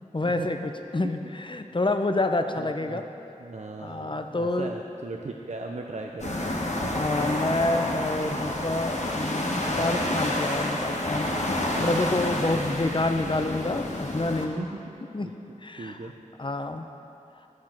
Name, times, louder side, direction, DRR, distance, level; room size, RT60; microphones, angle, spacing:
voice 1, 0.1-3.0 3.8-4.7 6.9-11.4 11.8-14.7 15.1-15.3 15.6-16.0 16.4-16.8, left 2 dB, 35° left, 7 dB, 0.6 m, -28 dB
voice 2, 2.6-3.0 3.4-6.5 11.3-12.1 12.4-12.6 14.6-15.0 15.2-15.3 15.8-16.1, right 3 dB, 60° right, 1 dB, 0.5 m, -38 dB
sound 1, 6.2-14.5, left 1 dB, 60° left, 1.1 m, -29 dB
9.6 x 7.5 x 4.4 m, 2.8 s
wide cardioid pair, 40°, 14 cm